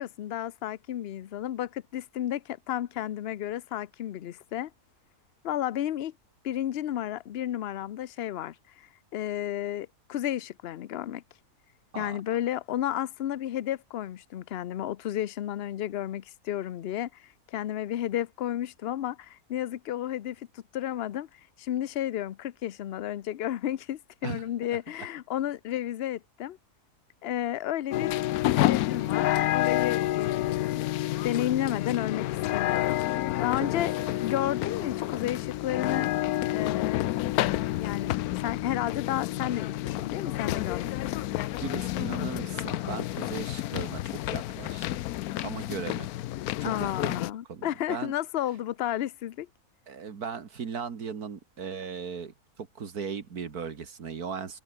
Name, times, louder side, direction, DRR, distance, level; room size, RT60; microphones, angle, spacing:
voice 1, 0.0-4.7 5.4-6.1 6.4-11.2 11.9-26.6 27.2-28.1 28.6-30.9 31.2-36.1 36.5-37.1 37.7-41.1 46.6-49.5, left 12 dB, 55° left, 0.7 m, -32 dB
sound 1, 27.9-47.3, left 15 dB, 75° left, 1.0 m, -29 dB
voice 2, 41.6-44.9 45.4-46.1 46.6-47.2 47.5-48.1 49.9-54.6, right 6 dB, 75° right, 2.2 m, -37 dB
omnidirectional pair, 1.6 m